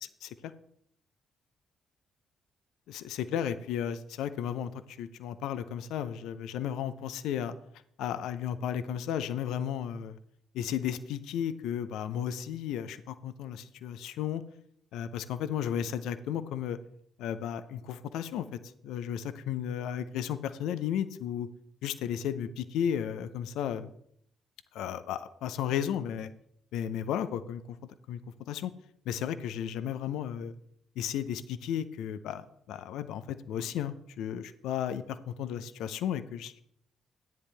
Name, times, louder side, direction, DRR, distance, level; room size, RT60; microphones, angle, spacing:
voice 1, 2.9-7.5 8.0-10.2 10.5-14.4 14.9-16.8 17.2-21.5 21.8-23.9 24.7-26.3 26.7-28.7 29.1-30.5 31.0-36.6, left 9 dB, 70° left, 13 dB, 0.6 m, -34 dB
13.5 x 9.8 x 3.3 m, 0.68 s
hypercardioid pair, 45°, 0 cm